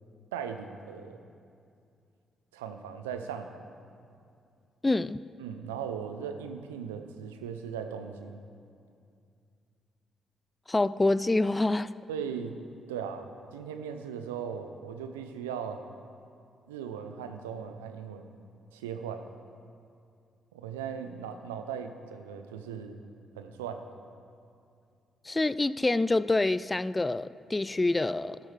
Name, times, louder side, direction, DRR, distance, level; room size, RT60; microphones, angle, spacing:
voice 1, 0.3-1.2 2.5-3.6 5.4-8.4 12.1-12.6 12.9-15.8 16.7-18.4 18.7-19.3 20.5-23.0 23.4-23.9, right 7 dB, 90° right, 0.5 m, -38 dB
voice 2, 4.8-5.2 10.7-11.9 25.2-28.4, left 2 dB, 25° left, 0.3 m, -26 dB
13.0 x 11.5 x 3.3 m
hypercardioid pair, 45°, 0 cm